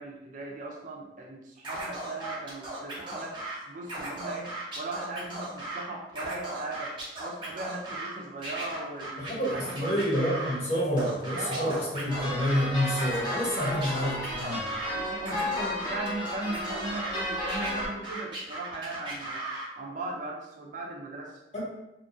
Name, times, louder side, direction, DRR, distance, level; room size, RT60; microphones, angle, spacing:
voice 1, 0.0-10.2 11.3-11.8 13.6-13.8 14.9-19.5 19.8-21.4, right 2 dB, 45° right, 0 dB, 0.4 m, -38 dB
Scratching (performance technique), 1.6-3.5 3.8-5.8 6.1-8.1 8.4-10.6 11.0-12.6 12.9-14.9 15.2-17.2 17.5-19.7, right 2 dB, 25° right, 0.8 m, -37 dB
voice 2, 9.2-14.6 21.5-21.6, equal, 40° left, -7 dB, 1.0 m, -28 dB
sound 1, 12.1-17.9, left 1 dB, 25° left, 0.6 m, -33 dB
2.8 x 2.3 x 2.6 m, 0.92 s
head